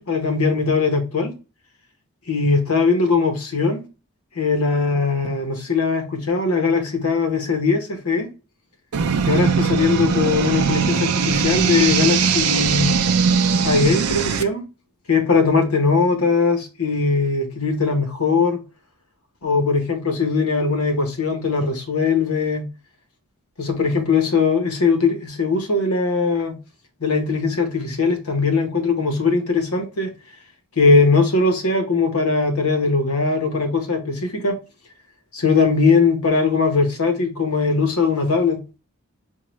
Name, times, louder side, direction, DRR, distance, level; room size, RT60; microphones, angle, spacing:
voice 1, 0.0-1.3 2.3-3.8 4.3-8.3 9.3-12.9 13.6-14.7 15.1-18.6 19.4-22.7 23.6-26.6 27.0-30.1 30.8-34.6 35.3-38.6, left 4 dB, 80° left, 0.9 m, -20 dB
sound 1, 8.9-14.4, right 6 dB, 85° right, 0.4 m, -20 dB
4.6 x 2.1 x 2.9 m
head